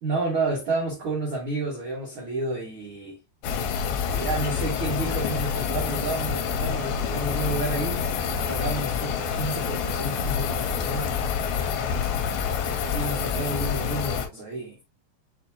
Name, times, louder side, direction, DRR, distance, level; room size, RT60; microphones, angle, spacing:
voice 1, 0.0-3.2 4.1-8.1 8.5-11.1 12.9-14.8, right 2 dB, 75° right, 1.2 m, -30 dB
sound 1, 3.4-14.3, left 6 dB, 85° left, 2.6 m, -27 dB
6.6 x 2.8 x 2.8 m
omnidirectional pair, 4.4 m